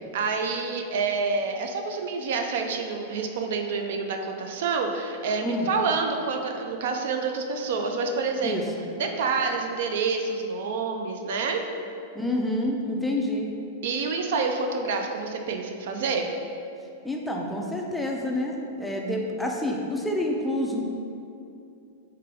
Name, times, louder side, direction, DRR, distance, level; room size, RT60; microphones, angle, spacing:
voice 1, 0.1-8.6 9.0-11.6 13.8-16.3, right 4 dB, 65° right, 4 dB, 0.4 m, -28 dB
voice 2, 12.1-13.5 17.0-20.8, left 1 dB, 5° left, -1 dB, 0.3 m, -28 dB
3.7 x 3.2 x 3.4 m, 2.6 s
supercardioid pair, 160°, 0 cm